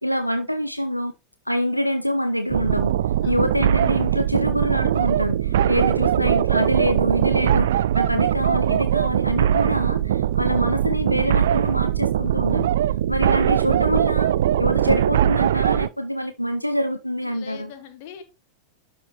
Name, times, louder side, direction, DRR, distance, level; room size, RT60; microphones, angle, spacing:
voice 1, 0.0-1.1 1.5-2.9 3.3-12.7 13.1-14.3 14.6-17.7, equal, 90° left, 0.6 m, -25 dB
sound 1, 2.5-15.9, right 11 dB, 60° right, 0.3 m, -21 dB
voice 2, 3.1-3.7 5.5-5.8 17.2-18.2, left 8 dB, 50° left, 1.9 m, -43 dB
12.0 x 4.7 x 3.0 m
figure-of-eight pair, 90°, 0 cm